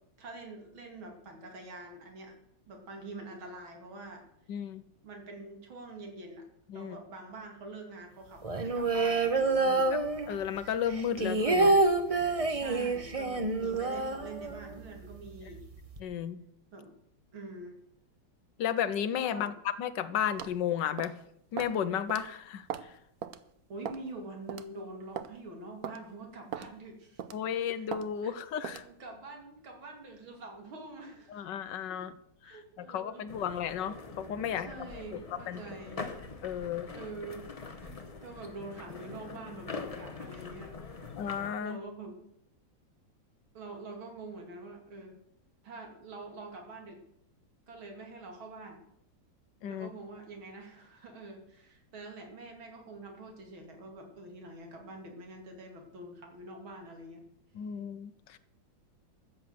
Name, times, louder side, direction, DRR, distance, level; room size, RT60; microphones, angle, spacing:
voice 1, 0.2-2.3 2.7-4.2 5.0-6.5 6.7-10.0 12.5-15.7 16.7-16.9 17.3-17.8 19.3-19.5 23.7-27.2 27.5-27.9 28.2-28.4 28.6-31.5 31.9-32.0 32.4-33.5 34.5-36.1 36.9-41.1 41.6-42.2 43.5-45.2 45.6-47.0 47.7-48.8 49.7-57.2, right 2 dB, 80° right, 3 dB, 3.3 m, -46 dB
voice 2, 4.5-4.8 6.7-7.0 9.9-10.0 10.3-11.8 16.0-16.4 18.6-19.5 19.8-21.1 21.5-22.6 27.3-28.8 31.3-32.1 32.4-35.2 35.5-35.6 36.4-36.9 41.2-41.8 49.6-49.9 57.5-58.4, left 8 dB, 70° left, 14 dB, 1.3 m, -33 dB
sound 1, 8.4-10.6 10.9-14.8 15.1-15.2 15.5-16.0, right 3 dB, 35° right, 0.6 m, -27 dB
sound 2, 20.4-20.6 21.0-21.2 21.6-21.8 22.1-22.2 22.7-22.9 23.2-23.4 23.9-24.1 24.5-24.7 25.2-25.3 25.8-26.0 26.5-26.7 27.2-27.4 27.9-28.1 28.6-28.9, right 9 dB, 60° right, 1.0 m, -38 dB
sound 3, 33.3-41.5, left 4 dB, 30° left, 0.7 m, -44 dB
13.5 x 7.6 x 7.8 m, 0.75 s
omnidirectional pair, 2.2 m